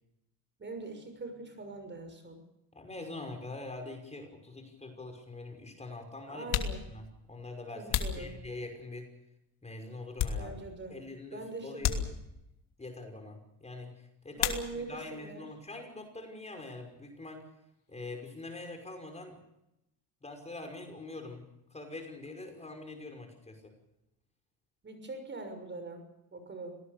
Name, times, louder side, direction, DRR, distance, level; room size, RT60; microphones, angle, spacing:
voice 1, 0.6-2.4 6.3-6.8 7.7-8.3 10.4-11.0 11.3-12.1 14.3-15.5 24.8-26.8, right 2 dB, 30° right, 7 dB, 6.4 m, -42 dB
voice 2, 2.7-6.5 6.9-9.1 9.6-10.6 10.9-12.0 12.8-17.4 17.9-19.4 20.2-23.7, left 2 dB, 15° left, 4 dB, 5.6 m, -44 dB
sound 1, 4.6-4.7 5.6-5.7 6.3-9.0 9.5-10.9 11.2-11.3 11.8-12.6 14.3-15.1 15.4-16.1 16.4-18.5, left 9 dB, 70° left, 3.0 m, -36 dB
26.0 x 19.0 x 6.9 m, 0.87 s
cardioid pair, 105°, 39 cm